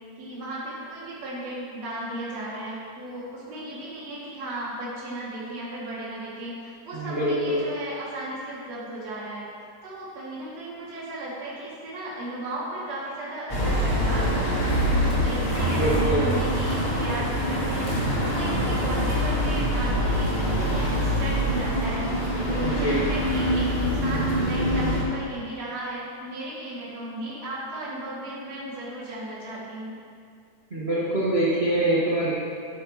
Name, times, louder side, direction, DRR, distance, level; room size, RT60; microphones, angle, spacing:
voice 1, 0.2-9.4 9.8-29.9, right 1 dB, 55° right, -9 dB, 3.7 m, -35 dB
voice 2, 6.9-7.6 15.7-16.3 22.6-23.0 30.7-32.3, right 1 dB, 40° right, -8 dB, 0.9 m, -24 dB
sound 1, 13.5-25.0, equal, 20° left, 1.8 m, -24 dB
12.0 x 9.9 x 3.2 m, 2.2 s
omnidirectional pair, 3.8 m